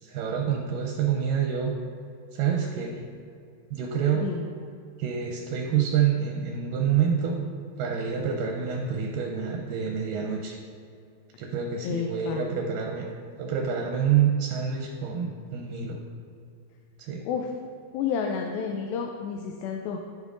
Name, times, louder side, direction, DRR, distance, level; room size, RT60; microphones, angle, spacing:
voice 1, 0.0-1.7 2.3-3.0 3.7-4.3 5.0-7.5 7.8-10.6 11.4-13.0 13.4-16.0 17.0-17.2, right 8 dB, 80° right, 2 dB, 2.1 m, -27 dB
voice 2, 4.1-4.5 11.8-12.5 17.3-17.5 17.9-20.0, left 6 dB, 80° left, 3 dB, 2.3 m, -30 dB
14.0 x 5.3 x 2.5 m, 2.4 s
omnidirectional pair, 4.3 m